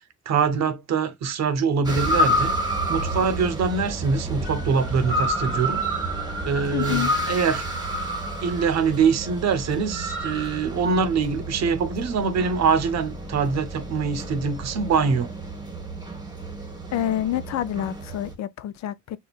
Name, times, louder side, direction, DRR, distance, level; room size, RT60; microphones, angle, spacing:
voice 1, 0.3-2.6 2.9-5.8 6.4-7.7 8.4-15.3, right 5 dB, 60° right, 0.7 m, -24 dB
sound 1, 1.8-18.3, equal, 15° right, 1.1 m, -29 dB
voice 2, 6.7-7.1 16.9-19.2, left 12 dB, 65° left, 0.4 m, -27 dB
5.2 x 2.3 x 2.3 m
cardioid pair, 90°, 30 cm